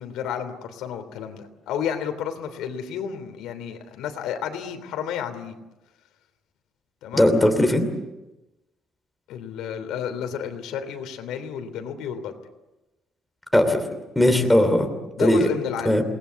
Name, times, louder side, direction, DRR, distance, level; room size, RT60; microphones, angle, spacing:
voice 1, 0.0-5.6 7.0-7.3 9.3-12.3 15.2-16.0, left 8 dB, 80° left, 7 dB, 3.3 m, -31 dB
voice 2, 7.1-7.9 13.5-13.8 14.2-14.9 15.2-15.5 15.8-16.0, left 1 dB, 5° left, 5 dB, 2.8 m, -18 dB
28.5 x 20.0 x 8.2 m, 1.0 s
cardioid pair, 170°, 0 cm